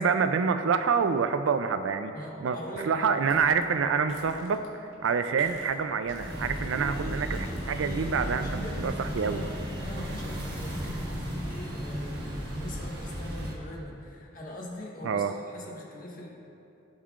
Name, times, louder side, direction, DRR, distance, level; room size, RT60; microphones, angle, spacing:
voice 1, 0.0-2.1 2.4-2.6 2.8-9.4 15.0-15.3, right 5 dB, 80° right, 9 dB, 0.4 m, -27 dB
voice 2, 2.1-3.2 8.2-9.5 9.8-16.3, left 1 dB, 45° left, -3 dB, 1.4 m, -42 dB
sound 1, 3.2-3.6 3.9-5.1 5.4-6.7 7.3-8.6, left 2 dB, 85° left, 1.5 m, -51 dB
sound 2, 6.0-13.5, equal, 50° right, 1.5 m, -34 dB
16.0 x 5.6 x 2.5 m, 2.7 s
head